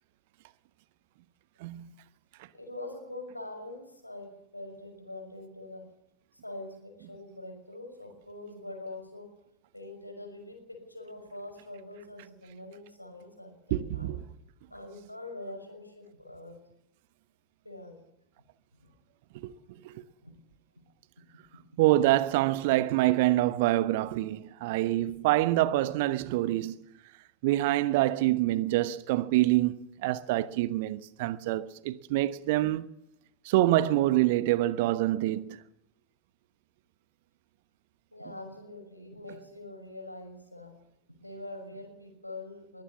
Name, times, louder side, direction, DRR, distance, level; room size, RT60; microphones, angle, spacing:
voice 1, 1.6-1.9 13.7-14.2 19.3-19.5 19.8-20.0 21.8-26.7 27.4-32.9 33.4-35.6, right 16 dB, 50° right, 1.0 m, -26 dB
voice 2, 2.5-5.8 6.3-9.3 9.7-14.2 14.7-16.6 17.6-17.9 18.8-18.9 19.4-19.5 20.2-20.3 38.1-40.7 41.2-42.8, left 2 dB, 85° left, 6.0 m, -44 dB
23.0 x 17.0 x 7.2 m
figure-of-eight pair, 90°, 0 cm